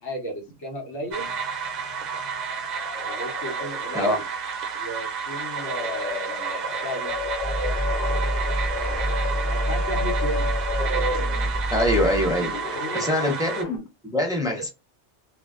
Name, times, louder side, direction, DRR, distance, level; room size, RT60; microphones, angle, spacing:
voice 1, 0.0-1.3 3.0-4.2 4.8-7.1 8.4-10.5 12.7-13.3, equal, 85° left, 2 dB, 1.2 m, -35 dB
sound 1, 0.9-13.8, left 3 dB, 60° left, 1.0 m, -34 dB
sound 2, 1.1-13.6, right 6 dB, 55° right, 0.5 m, -31 dB
sound 3, 7.1-12.6, right 1 dB, 40° left, 1.0 m, -27 dB
voice 2, 11.7-12.5 12.9-13.8 14.1-14.7, left 1 dB, 5° right, 0 dB, 0.5 m, -23 dB
2.4 x 2.2 x 2.3 m, 0.25 s
omnidirectional pair, 1.1 m